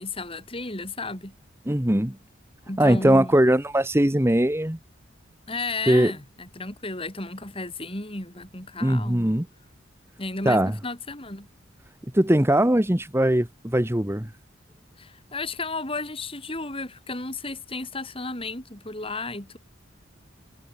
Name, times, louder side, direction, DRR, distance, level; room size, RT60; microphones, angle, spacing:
voice 1, 0.0-1.3 2.7-3.4 5.5-9.3 10.2-11.5 15.0-19.6, left 3 dB, 30° left, 5.9 m, -33 dB
voice 2, 1.7-2.2 2.8-4.8 5.9-6.1 8.8-9.4 10.4-10.8 12.1-14.3, right 1 dB, 15° right, 1.2 m, -20 dB
head